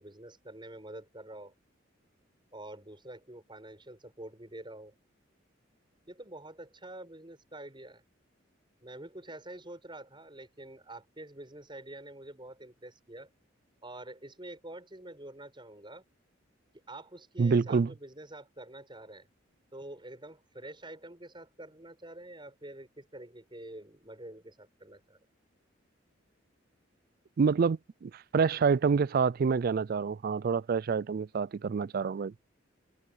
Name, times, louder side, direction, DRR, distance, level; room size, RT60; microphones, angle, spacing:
voice 1, 0.0-1.5 2.5-4.9 6.1-8.0 8.8-13.3 13.8-16.0 16.9-19.3 19.7-25.2, right 1 dB, 25° right, 7.1 m, -47 dB
voice 2, 17.4-17.9 27.4-32.3, right 5 dB, 50° right, 0.4 m, -27 dB
head